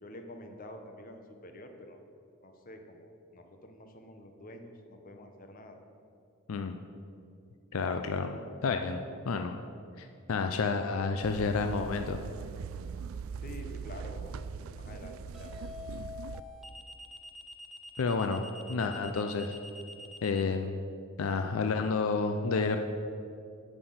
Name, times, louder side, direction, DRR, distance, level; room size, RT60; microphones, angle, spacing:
voice 1, 0.0-2.0 2.4-5.8 13.4-14.3 14.7-15.5, left 1 dB, 40° left, 5 dB, 0.9 m, -48 dB
voice 2, 7.7-9.0 9.3-9.5 10.0-12.2 18.0-18.4 18.7-19.6 20.2-20.8 21.2-22.8, left 4 dB, 75° left, 6 dB, 0.5 m, -30 dB
sound 1, 11.2-16.4, right 6 dB, 70° right, 0.3 m, -41 dB
sound 2, 15.3-20.4, left 3 dB, ahead, 0.6 m, -46 dB
7.8 x 6.1 x 7.8 m, 2.5 s
head